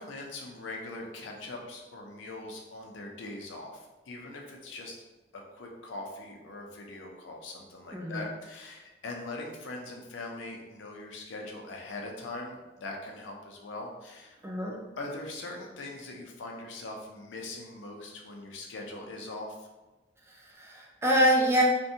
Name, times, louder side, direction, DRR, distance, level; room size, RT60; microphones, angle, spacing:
voice 1, 0.0-5.0 5.3-14.4 15.0-19.7, left 2 dB, 90° left, 0 dB, 0.5 m, -41 dB
voice 2, 7.9-8.2 14.4-14.8 20.3-21.6, equal, 15° right, -1 dB, 0.3 m, -26 dB
2.5 x 2.2 x 2.7 m, 1.1 s
head